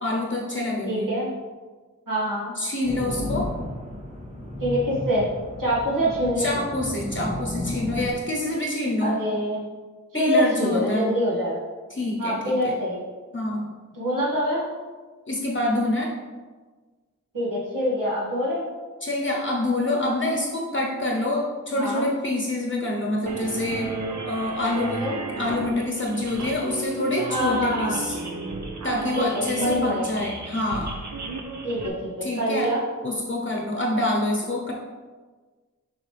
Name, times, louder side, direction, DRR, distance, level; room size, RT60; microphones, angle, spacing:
voice 1, 0.0-1.1 2.6-3.5 6.4-9.2 10.1-11.1 11.9-12.7 13.3-13.7 15.3-16.1 19.0-23.9 24.2-25.0 25.4-28.2 28.8-31.0 32.2-32.7 33.0-34.7, left 1 dB, 40° left, -1 dB, 0.8 m, -26 dB
voice 2, 0.9-1.3 2.1-2.5 4.6-5.3 5.6-6.6 9.0-9.7 10.1-11.6 12.2-13.0 13.9-14.6 17.3-18.7 21.8-22.1 24.8-25.2 27.3-28.0 29.1-30.1 31.6-32.8, equal, 80° right, -6 dB, 2.0 m, -25 dB
sound 1, 2.8-8.1, left 1 dB, 20° right, 1.4 m, -33 dB
sound 2, 23.3-31.9, right 2 dB, 60° right, 0.9 m, -33 dB
6.4 x 5.6 x 3.4 m, 1.4 s
wide cardioid pair, 70°, 32 cm